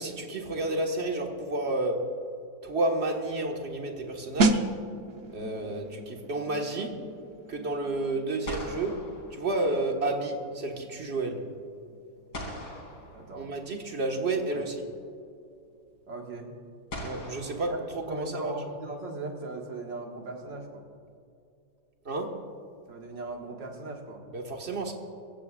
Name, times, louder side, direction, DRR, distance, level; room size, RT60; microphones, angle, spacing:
voice 1, 0.0-2.1 2.6-4.7 5.3-7.1 7.5-9.0 9.3-11.4 13.4-14.7 17.0-18.5 22.0-22.4 24.3-24.9, right 2 dB, 35° right, 2 dB, 1.7 m, -31 dB
sound 1, 3.0-3.8 7.9-8.0 8.4-10.2 12.3-13.9 15.3-15.4 16.9-18.5, left 1 dB, 65° left, 3.6 m, -42 dB
sound 2, 4.4-14.9 15.2-15.4, right 2 dB, 55° right, 0.7 m, -34 dB
voice 2, 13.1-13.5 14.5-14.7 16.1-16.5 17.6-17.8 18.1-20.8 22.9-24.2, right 2 dB, 75° right, 1 dB, 2.4 m, -38 dB
23.5 x 15.0 x 2.4 m, 2.5 s
omnidirectional pair, 2.0 m